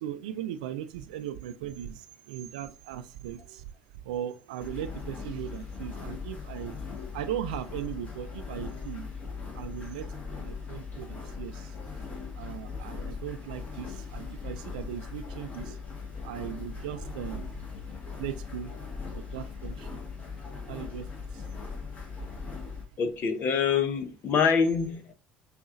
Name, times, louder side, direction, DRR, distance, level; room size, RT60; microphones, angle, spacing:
voice 1, 0.0-3.6 4.1-6.8 7.1-9.1 9.6-10.1 10.4-11.7 12.4-15.8 16.2-17.5 18.2-18.7 19.1-19.9 20.7-21.1, right 10 dB, 75° right, 0.4 m, -38 dB
sound 1, 4.6-22.8, left 5 dB, 35° left, 1.8 m, -39 dB
voice 2, 23.0-25.1, left 6 dB, 50° left, 0.8 m, -25 dB
5.6 x 3.0 x 2.5 m
hypercardioid pair, 65°, 4 cm